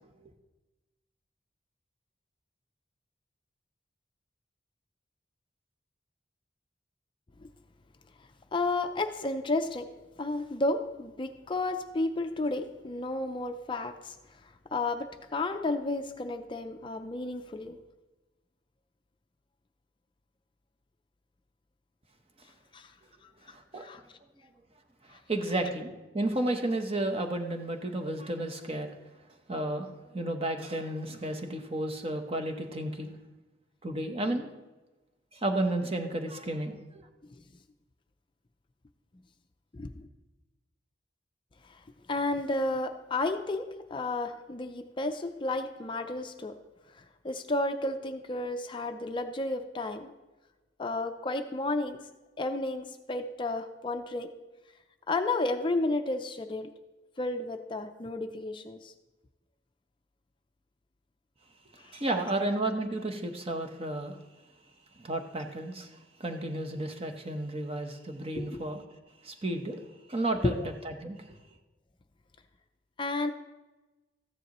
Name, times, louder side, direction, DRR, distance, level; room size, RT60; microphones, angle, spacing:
voice 1, 8.5-14.2 14.4-17.8 22.7-22.9 23.2-23.3 23.8-24.0 25.1-25.2 39.7-40.1 41.6-41.8 42.1-46.6 46.9-50.1 50.8-52.0 52.4-54.3 55.1-56.7 57.2-58.9 61.8-61.9 68.3-68.6 70.4-70.6 73.0-73.3, left 2 dB, 25° left, 7 dB, 0.4 m, -32 dB
voice 2, 23.5-23.8 25.1-28.9 29.5-33.1 33.8-34.5 35.3-37.1 61.9-64.2 65.0-65.9 66.2-68.8 69.2-69.8 70.1-70.6 70.8-71.2, right 1 dB, 30° right, 5 dB, 0.9 m, -32 dB
14.0 x 10.0 x 3.0 m, 1.1 s
head